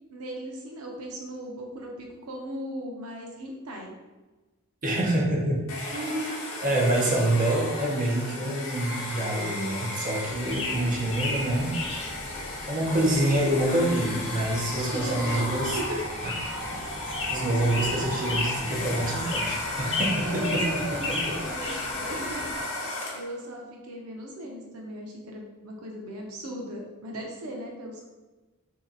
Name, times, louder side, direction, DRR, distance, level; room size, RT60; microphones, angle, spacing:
voice 1, 0.1-3.9 5.9-6.5 10.7-11.0 14.7-16.0 20.3-22.5 23.1-28.0, equal, 85° right, 0 dB, 0.7 m, -37 dB
voice 2, 4.8-5.7 6.2-6.3 6.6-11.8 12.7-15.8 16.2-16.3 16.7-16.8 17.3-20.6 21.1-21.3, right 1 dB, 40° right, -2 dB, 0.8 m, -26 dB
Domestic sounds home sounds, 5.7-23.4, left 1 dB, 65° left, 0.8 m, -35 dB
sound 1, 10.3-22.6, left 2 dB, 30° left, 1.1 m, -35 dB
3.2 x 2.9 x 3.8 m, 1.2 s
head